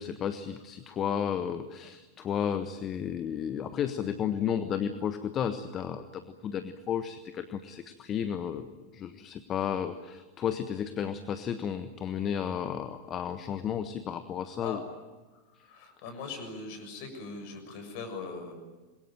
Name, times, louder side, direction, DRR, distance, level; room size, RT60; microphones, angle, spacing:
voice 1, 0.0-8.7 8.9-14.8, left 8 dB, 30° left, 10 dB, 1.3 m, -33 dB
voice 2, 15.3-18.5, left 4 dB, 50° left, 6 dB, 7.0 m, -41 dB
27.0 x 22.5 x 9.1 m, 1.3 s
figure-of-eight pair, 90°, 0 cm